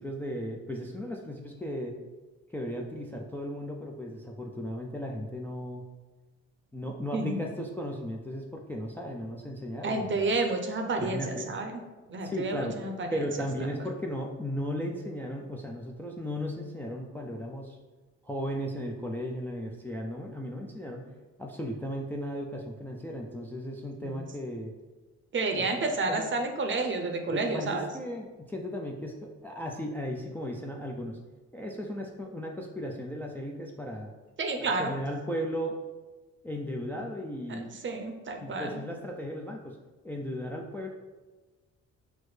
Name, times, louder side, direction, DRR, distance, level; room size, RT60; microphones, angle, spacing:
voice 1, 0.0-2.0 2.5-5.8 6.7-10.3 11.0-11.5 12.2-12.8 13.1-17.8 18.2-21.1 21.4-24.7 25.5-25.6 26.1-26.3 27.3-31.2 31.5-34.1 34.6-35.8 36.4-37.7 38.4-39.8 40.0-40.9, equal, 5° left, 0 dB, 0.3 m, -36 dB
voice 2, 9.8-11.8 12.1-13.3 13.6-13.7 24.0-24.2 25.3-27.9 34.4-34.9 37.5-38.8, right 3 dB, 40° right, 4 dB, 0.6 m, -30 dB
6.1 x 2.0 x 3.2 m, 1.2 s
cardioid pair, 90°, 30 cm